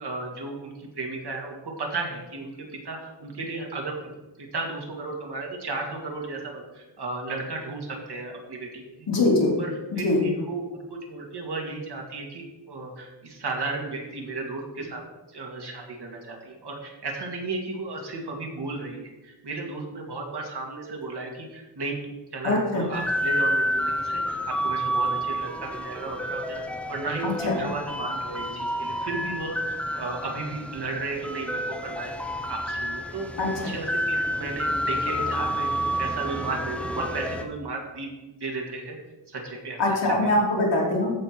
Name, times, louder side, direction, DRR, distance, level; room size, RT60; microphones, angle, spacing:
voice 1, 0.0-2.5 2.8-3.9 4.4-8.9 9.6-15.0 15.3-22.0 22.3-26.6 26.9-32.1 32.5-33.3 33.6-35.7 36.0-38.1 38.4-39.0 39.3-39.8 40.2-40.3, right 3 dB, 65° right, 1 dB, 2.1 m, -34 dB
voice 2, 9.1-9.5 9.9-10.2 22.4-22.8 27.2-27.6 33.4-33.7 39.8-41.1, left 2 dB, 70° left, -3 dB, 3.1 m, -23 dB
sound 1, 22.9-37.4, equal, 5° left, 0.8 m, -29 dB
14.0 x 5.6 x 4.4 m, 1.1 s
wide cardioid pair, 165°, 44 cm